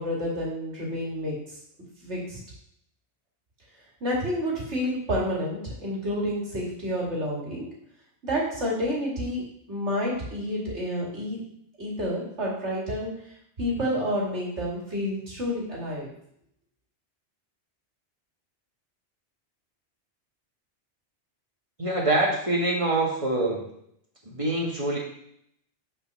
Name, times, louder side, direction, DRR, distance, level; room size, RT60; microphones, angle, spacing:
voice 1, 0.0-1.6 2.0-2.4 4.0-7.7 8.2-11.4 11.8-13.2 13.6-16.1, equal, 70° right, -4 dB, 2.7 m, -29 dB
voice 2, 21.8-23.6 24.3-25.0, right 2 dB, 30° right, -2 dB, 1.9 m, -25 dB
6.5 x 4.7 x 6.2 m, 0.71 s
omnidirectional pair, 1.2 m